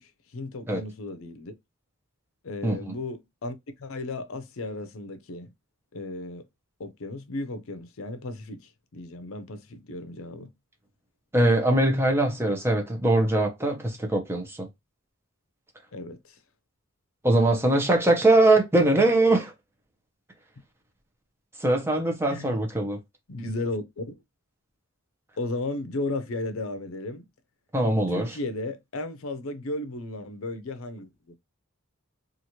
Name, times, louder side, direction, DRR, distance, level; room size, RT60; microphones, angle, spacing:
voice 1, 0.0-1.5 2.4-5.5 5.9-6.4 6.8-10.5 15.9-16.4 22.3-22.6 23.3-24.1 25.4-27.2 28.1-31.3, left 2 dB, 70° left, 0.6 m, -35 dB
voice 2, 2.6-2.9 11.3-14.7 17.2-19.5 21.6-23.0 27.7-28.3, right 2 dB, 10° right, 0.6 m, -22 dB
3.0 x 2.4 x 2.8 m
head